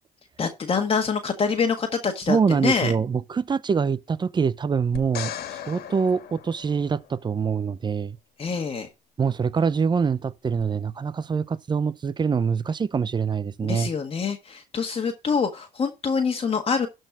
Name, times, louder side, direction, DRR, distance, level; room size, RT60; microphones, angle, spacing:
voice 1, 0.4-2.9 8.4-8.9 13.6-16.9, left 5 dB, 35° left, 1.6 m, -25 dB
voice 2, 2.3-5.3 5.7-8.2 9.2-13.9, right 6 dB, 25° right, 0.7 m, -24 dB
sound 1, 5.0-7.3 10.6-10.7, left 10 dB, 70° left, 2.0 m, -37 dB
12.5 x 4.3 x 6.0 m
cardioid pair, 110°, 17 cm